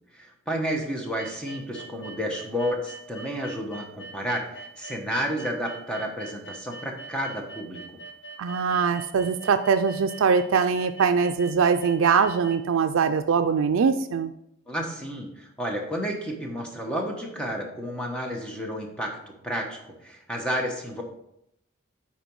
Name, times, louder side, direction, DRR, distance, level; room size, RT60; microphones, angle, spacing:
voice 1, 0.1-8.0 14.7-19.1 19.4-21.0, equal, 5° left, 0 dB, 1.1 m, -31 dB
sound 1, 1.2-12.6, right 3 dB, 55° left, 0.8 m, -43 dB
voice 2, 8.4-14.3, right 6 dB, 80° right, 9 dB, 0.4 m, -22 dB
9.2 x 4.4 x 4.6 m, 0.77 s
head